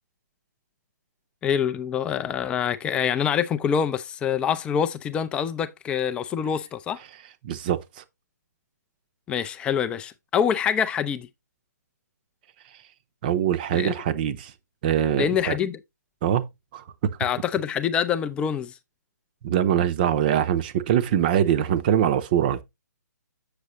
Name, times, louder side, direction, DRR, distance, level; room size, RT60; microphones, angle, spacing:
voice 1, 1.4-7.0 9.3-11.3 13.7-13.9 15.2-15.8 17.2-18.7, left 8 dB, 10° left, 0.5 m, -25 dB
voice 2, 7.4-7.8 13.2-14.5 14.8-15.6 16.2-16.4 16.7-16.8 19.4-22.6, right 10 dB, 30° right, 0.7 m, -23 dB
8.1 x 6.7 x 3.0 m
figure-of-eight pair, 135°, 10 cm